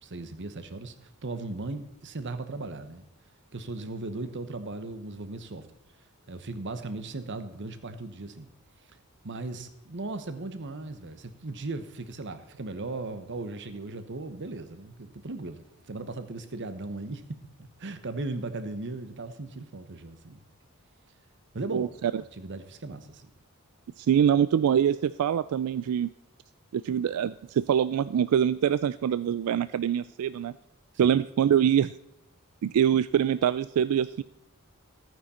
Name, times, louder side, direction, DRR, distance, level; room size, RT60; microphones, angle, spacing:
voice 1, 0.0-3.1 3.5-5.7 6.3-8.5 9.2-17.4 17.8-20.4 21.5-21.9 22.2-23.3 31.0-31.2, right 2 dB, 55° right, 11 dB, 1.0 m, -37 dB
voice 2, 21.7-22.1 24.0-26.1 26.7-30.5 31.0-31.9 32.6-34.2, right 9 dB, 85° right, 15 dB, 0.3 m, -24 dB
14.0 x 9.3 x 4.3 m, 0.82 s
head